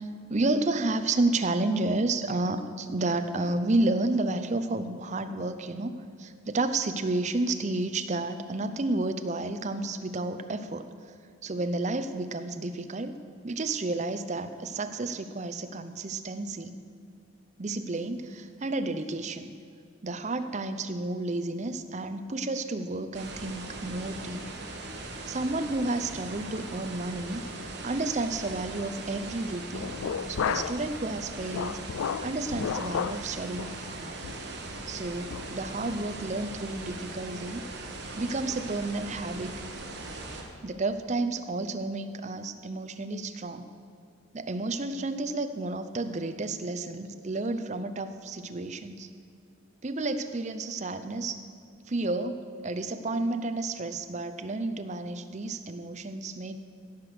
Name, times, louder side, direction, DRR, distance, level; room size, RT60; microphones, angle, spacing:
voice 1, 0.0-5.9 6.2-10.9 11.4-13.1 13.4-16.7 17.6-19.5 20.0-24.5 25.3-27.4 27.8-29.9 30.3-31.8 32.2-34.2 34.9-37.6 38.2-39.5 40.6-43.7 44.3-49.1 49.8-51.4 51.9-56.6, right 2 dB, 35° right, 9 dB, 0.6 m, -31 dB
sound 1, 23.1-40.4, right 2 dB, 55° right, 1.6 m, -40 dB
sound 2, 29.7-30.9 31.2-33.2 33.6-33.8 34.2-34.5 34.9-35.0 35.3-35.5, left 7 dB, 90° left, 0.4 m, -32 dB
16.5 x 6.0 x 6.6 m, 2.4 s
head